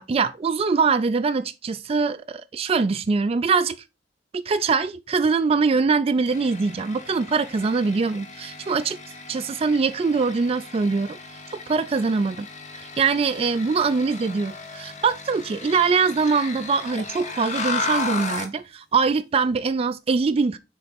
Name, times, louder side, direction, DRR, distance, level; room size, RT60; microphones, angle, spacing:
voice 1, 0.0-3.8 4.3-9.0 9.3-11.2 11.7-12.5 12.7-20.6, right 4 dB, 35° right, 0.3 m, -23 dB
sound 1, 6.2-18.6, left 4 dB, 40° left, 1.0 m, -35 dB
6.5 x 4.0 x 4.2 m
head